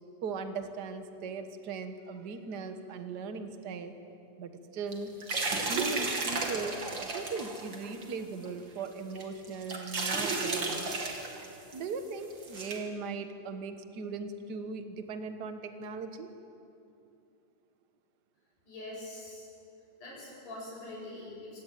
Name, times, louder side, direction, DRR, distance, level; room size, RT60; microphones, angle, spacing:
voice 1, 0.2-3.9 4.4-5.1 5.5-10.9 11.7-16.3, right 4 dB, 90° right, 7 dB, 0.9 m, -39 dB
sound 1, 4.9-8.1 8.4-8.5 9.2-11.5 11.7-11.8 12.3-12.8, right 3 dB, 35° right, 2.9 m, -33 dB
voice 2, 18.7-19.5 20.0-21.6, left 2 dB, 65° left, -4 dB, 9.5 m, -43 dB
25.0 x 18.0 x 9.2 m, 2.7 s
omnidirectional pair, 3.9 m